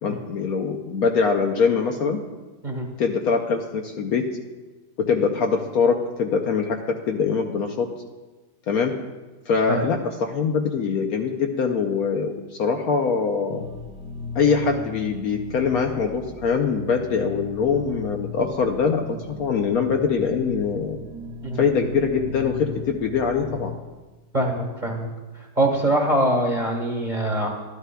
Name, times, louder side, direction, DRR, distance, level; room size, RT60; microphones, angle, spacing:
voice 1, 0.0-2.2 3.0-4.3 5.0-7.9 8.7-8.9 9.5-13.6 14.3-21.0 21.5-23.7, left 5 dB, 65° left, 3 dB, 1.0 m, -23 dB
sound 1, 13.5-23.7, left 4 dB, 75° right, 1.7 m, -37 dB
voice 2, 24.3-25.1 25.6-27.5, right 1 dB, 30° right, 0 dB, 1.3 m, -23 dB
12.5 x 11.5 x 2.2 m, 1.2 s
omnidirectional pair, 1.9 m